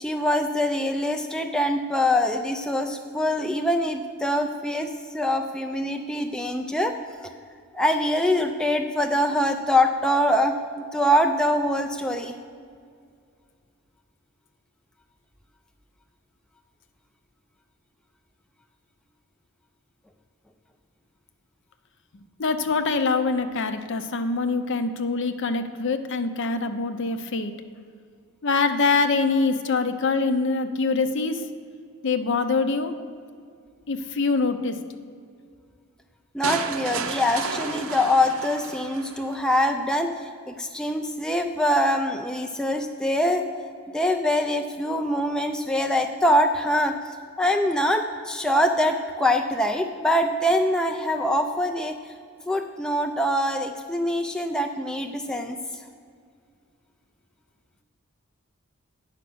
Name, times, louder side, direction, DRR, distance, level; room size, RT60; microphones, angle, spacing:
voice 1, 0.0-7.0 7.7-12.3 36.3-40.1 40.5-43.4 43.9-47.0 47.4-52.0 52.5-55.6, left 1 dB, 5° left, 4 dB, 0.3 m, -24 dB
voice 2, 22.4-27.5 28.4-31.4 32.0-32.9 33.9-34.8, left 4 dB, 55° left, 9 dB, 0.6 m, -24 dB
sound 1, 36.4-39.4, right 5 dB, 70° right, 0.6 m, -32 dB
9.1 x 5.9 x 6.2 m, 2.2 s
head